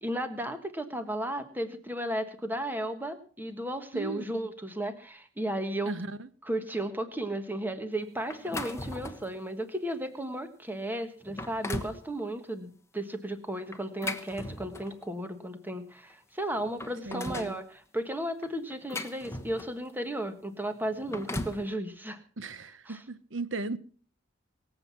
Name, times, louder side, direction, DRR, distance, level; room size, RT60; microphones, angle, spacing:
voice 1, 0.0-6.0 6.4-22.2 22.9-23.0, right 1 dB, 10° right, 1.4 m, -34 dB
voice 2, 3.9-4.2 5.9-6.3 17.0-17.6 22.4-23.8, right 3 dB, 65° right, 0.9 m, -36 dB
sound 1, 8.3-9.3 9.9-10.1 10.7-10.8 11.2-12.0 13.7-15.0 16.1-16.2 16.5-17.6 18.4-19.9 20.8-21.7, left 2 dB, 15° left, 1.1 m, -38 dB
23.5 x 8.0 x 5.9 m
head